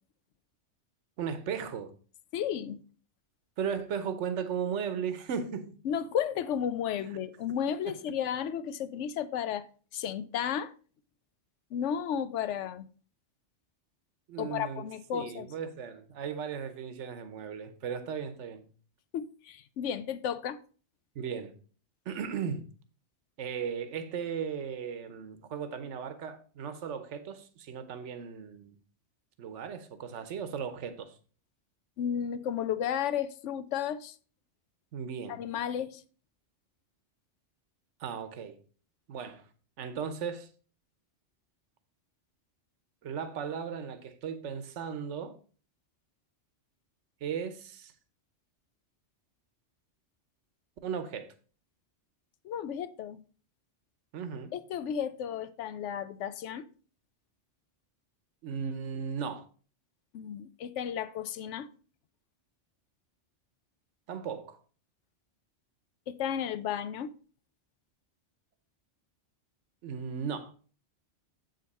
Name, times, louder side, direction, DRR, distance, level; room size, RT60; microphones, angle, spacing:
voice 1, 1.2-1.9 3.6-5.7 6.9-7.2 7.9-8.0 14.3-14.9 15.1-18.7 21.1-21.5 22.1-22.7 23.4-28.8 29.4-31.2 34.9-35.4 38.0-38.6 39.1-39.4 39.8-40.5 43.0-45.4 47.2-47.9 50.8-51.3 54.1-54.5 58.4-59.4 64.1-64.6 69.8-70.5, right 7 dB, 85° right, 1.1 m, -36 dB
voice 2, 2.3-2.8 5.8-9.7 9.9-10.7 11.7-12.9 14.4-15.5 19.1-20.6 32.0-34.2 35.3-36.0 52.4-53.2 54.5-56.6 60.1-61.7 66.1-67.1, left 9 dB, 85° left, 0.9 m, -33 dB
7.5 x 5.3 x 4.1 m
omnidirectional pair, 1.2 m